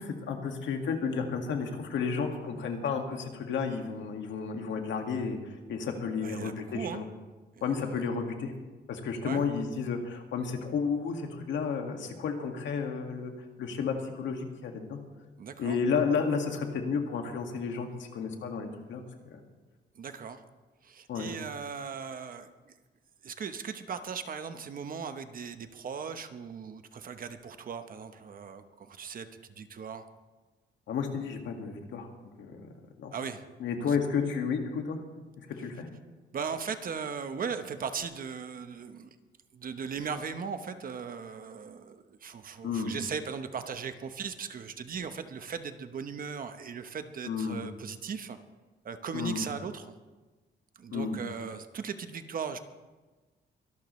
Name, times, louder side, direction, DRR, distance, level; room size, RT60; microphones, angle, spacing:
voice 1, 0.0-5.4 5.7-7.0 7.6-8.5 8.9-13.3 13.6-15.0 15.6-19.0 19.3-19.4 21.1-21.3 30.9-32.1 32.4-32.6 33.0-33.1 33.6-35.0 35.5-35.9 42.6-42.9 47.2-47.6 49.1-49.5 50.9-51.2, left 5 dB, 85° left, 3 dB, 2.0 m, -32 dB
voice 2, 6.2-7.0 7.6-7.9 9.2-9.4 15.4-15.8 20.0-20.4 20.8-22.7 23.2-29.3 29.6-30.0 33.1-33.4 33.9-34.0 36.3-39.1 39.5-48.4 48.8-49.9 50.8-52.6, right 6 dB, 50° right, 9 dB, 1.0 m, -38 dB
24.0 x 12.0 x 3.2 m, 1.2 s
cardioid pair, 135°, 19 cm